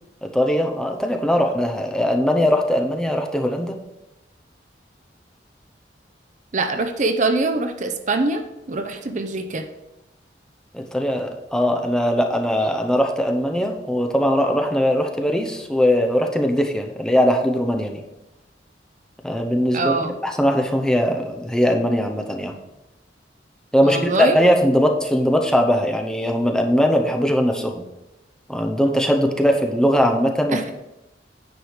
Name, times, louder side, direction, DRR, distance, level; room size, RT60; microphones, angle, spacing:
voice 1, 0.2-3.8 10.7-18.0 19.2-22.5 23.7-27.8 28.5-30.6, equal, 5° left, 3 dB, 0.7 m, -20 dB
voice 2, 6.5-9.7 19.7-20.1 23.8-24.4 30.5-30.7, right 3 dB, 45° right, 8 dB, 0.6 m, -23 dB
9.5 x 4.8 x 5.0 m, 0.95 s
head